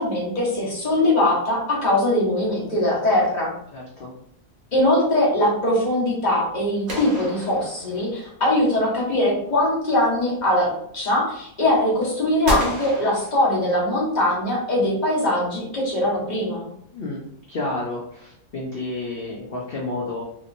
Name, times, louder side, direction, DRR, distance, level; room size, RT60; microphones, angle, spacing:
voice 1, 0.0-3.5 4.7-16.7, left 1 dB, 30° left, -5 dB, 1.0 m, -21 dB
voice 2, 3.7-4.1 16.9-17.2 17.5-20.2, left 2 dB, 80° left, -3 dB, 0.5 m, -30 dB
sound 1, 6.9-8.3 12.5-14.0, equal, 50° right, 1.1 m, -30 dB
3.0 x 2.9 x 2.5 m, 0.70 s
omnidirectional pair, 1.7 m